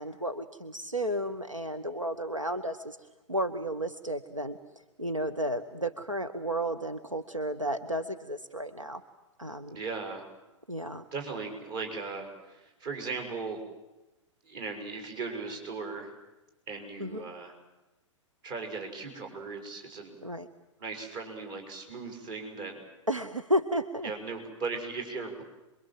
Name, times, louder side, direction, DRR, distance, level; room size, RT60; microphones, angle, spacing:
voice 1, 0.0-3.0 3.3-4.6 5.0-9.0 9.4-9.8 10.7-11.0 17.0-17.3 20.2-20.5 23.1-24.1, equal, 90° right, 9 dB, 1.2 m, -32 dB
voice 2, 9.7-10.2 11.1-13.6 14.4-16.1 16.7-17.5 18.4-20.1 20.8-22.8 24.0-25.4, right 4 dB, 40° right, 3 dB, 6.6 m, -37 dB
27.5 x 23.0 x 7.8 m, 1.0 s
figure-of-eight pair, 105°, 16 cm